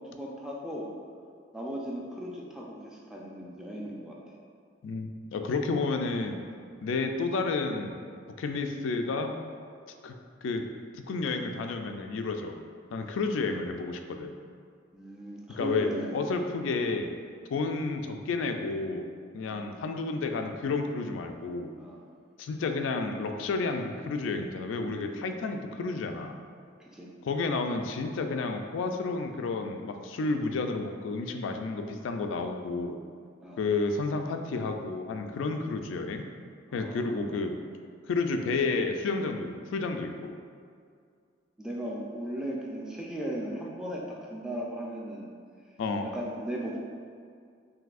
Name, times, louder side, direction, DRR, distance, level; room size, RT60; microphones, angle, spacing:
voice 1, 0.1-0.9 1.5-4.2 14.9-16.4 19.4-19.6 21.7-22.0 26.8-27.1 33.4-33.6 36.7-37.2 41.6-45.3 46.0-46.8, equal, 5° right, -4 dB, 0.4 m, -37 dB
voice 2, 4.8-6.4 6.8-8.0 8.4-9.3 10.0-10.1 10.4-10.7 11.1-12.6 12.9-14.3 15.6-17.1 17.5-19.1 19.3-21.7 22.4-26.4 27.2-33.0 33.6-36.2 36.7-37.6 38.1-40.3 45.8-46.1, left 3 dB, 80° left, 5 dB, 0.3 m, -31 dB
5.9 x 2.7 x 2.4 m, 2.2 s
head